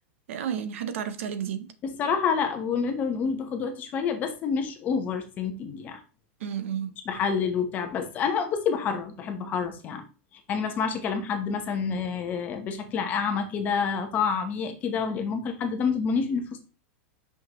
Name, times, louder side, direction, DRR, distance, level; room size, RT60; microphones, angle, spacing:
voice 1, 0.3-1.7 6.4-7.0, right 8 dB, 75° right, 0.7 m, -32 dB
voice 2, 1.8-6.0 7.1-10.0 10.5-16.6, left 6 dB, 25° left, 0.9 m, -28 dB
5.7 x 5.6 x 3.0 m
supercardioid pair, 170°, 7 cm